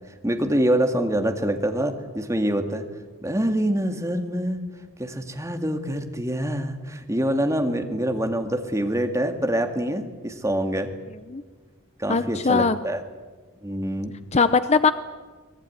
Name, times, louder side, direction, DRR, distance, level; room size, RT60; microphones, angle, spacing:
voice 1, 0.2-2.8 3.2-4.6 5.0-10.9 12.0-13.0 13.6-14.1, right 1 dB, 15° right, 5 dB, 2.1 m, -25 dB
voice 2, 12.1-12.8 14.3-14.9, left 4 dB, 30° left, 12 dB, 0.7 m, -20 dB
23.5 x 19.5 x 9.5 m, 1.4 s
head